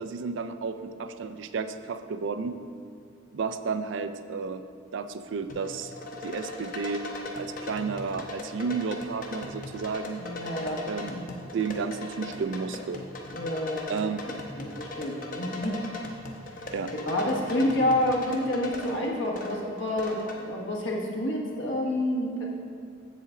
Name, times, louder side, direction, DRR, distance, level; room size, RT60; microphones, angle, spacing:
voice 1, 0.0-2.5 3.3-4.6 4.9-5.9 6.2-7.0 7.4-10.2 10.9-11.2 11.5-13.0 13.9-14.2 16.7-16.9, right 5 dB, 65° right, 10 dB, 0.4 m, -32 dB
sound 1, 5.5-20.4, left 2 dB, 40° left, 0.8 m, -39 dB
voice 2, 10.2-10.8 11.1-11.2 13.3-13.8 14.6-15.8 17.1-22.5, left 1 dB, 65° left, -1 dB, 1.3 m, -28 dB
7.8 x 7.5 x 3.7 m, 2.4 s
head